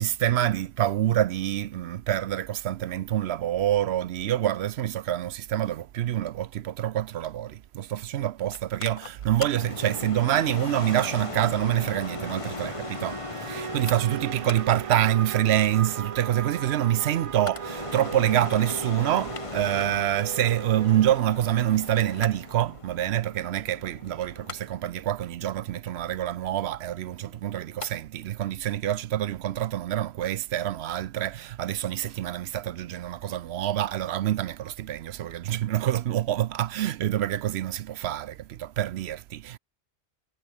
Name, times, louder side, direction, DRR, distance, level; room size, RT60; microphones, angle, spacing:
voice 1, 0.0-39.6, right 12 dB, 70° right, 0.8 m, -26 dB
Mechanical fan, 8.5-27.9 28.2-28.3, left 5 dB, 30° left, 0.9 m, -39 dB
sound 1, 10.9-21.2, right 7 dB, 50° right, 0.4 m, -38 dB
omnidirectional pair, 1.1 m